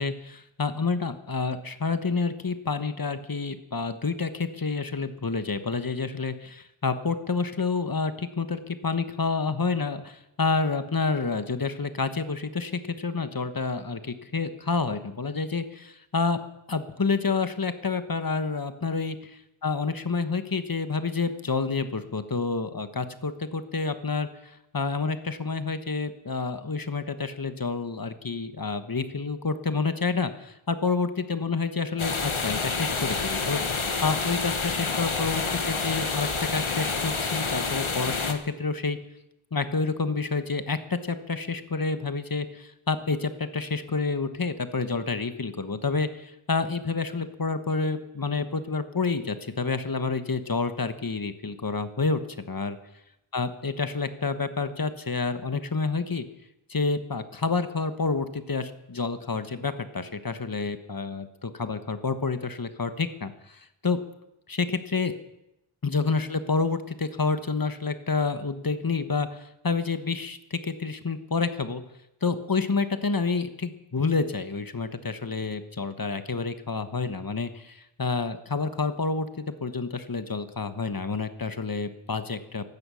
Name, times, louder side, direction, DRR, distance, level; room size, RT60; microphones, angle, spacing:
voice 1, 0.0-16.4 16.7-19.2 19.6-39.0 39.5-52.2 52.5-52.8 53.3-56.2 56.7-64.0 64.5-65.1 65.8-71.8 72.2-82.7, left 4 dB, 45° left, 10 dB, 1.3 m, -29 dB
sound 1, 32.0-38.3, left 4 dB, 75° left, 1.5 m, -28 dB
15.5 x 12.5 x 6.4 m, 0.88 s
wide cardioid pair, 50°, 49 cm